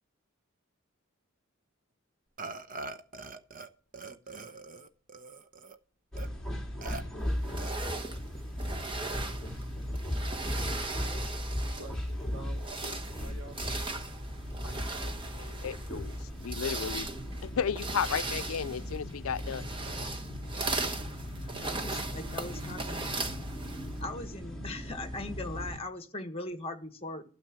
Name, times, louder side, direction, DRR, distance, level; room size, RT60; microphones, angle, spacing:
Burping eructation, 2.4-3.7 3.9-5.8 6.2-6.3 6.8-7.0 7.6-8.1, right 3 dB, 40° right, 0.9 m, -43 dB
voice 1, 4.1-4.6 11.7-13.9, equal, 65° right, 1.4 m, -49 dB
sound 1, 6.1-25.8, equal, 5° left, 2.8 m, -37 dB
sound 2, 7.4-12.0 12.5-24.0, right 3 dB, 25° right, 1.2 m, -38 dB
voice 2, 15.0-16.2 16.4-17.1 17.4-19.7, left 7 dB, 80° left, 0.5 m, -34 dB
voice 3, 21.4-23.1 24.0-27.2, left 2 dB, 30° left, 1.4 m, -40 dB
12.5 x 7.0 x 7.5 m
head